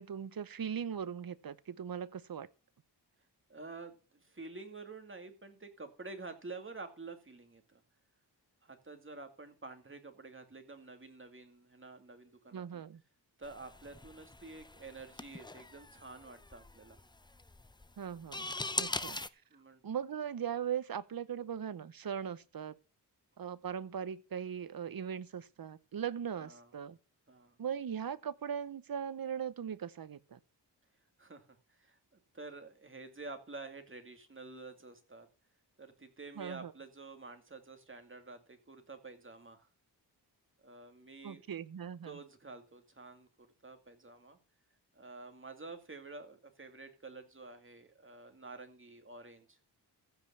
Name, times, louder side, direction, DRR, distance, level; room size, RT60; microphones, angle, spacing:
voice 1, 0.0-2.5 12.5-13.0 18.0-18.5 18.8-19.2 19.8-22.7 23.4-27.0 27.6-30.4 36.4-36.7 41.2-42.2, right 8 dB, 55° right, 0.9 m, -39 dB
voice 2, 3.5-7.8 8.6-12.8 13.4-17.0 18.7-19.1 19.5-19.8 26.4-26.7 27.3-27.6 31.2-35.3 35.8-39.7 40.6-41.4 42.0-44.4 44.9-49.6, right 3 dB, 30° right, 2.4 m, -49 dB
sound 1, 13.4-19.3, left 2 dB, 10° left, 0.6 m, -42 dB
15.0 x 5.3 x 7.1 m
wide cardioid pair, 90°, 42 cm